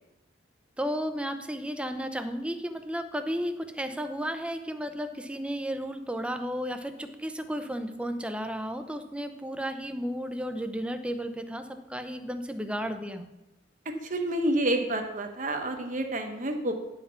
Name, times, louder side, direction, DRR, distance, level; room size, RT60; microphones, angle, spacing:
voice 1, 0.8-13.3, equal, 5° right, 7 dB, 0.6 m, -33 dB
voice 2, 14.1-16.7, right 1 dB, 45° right, 5 dB, 1.1 m, -28 dB
9.9 x 5.9 x 5.6 m, 0.97 s
head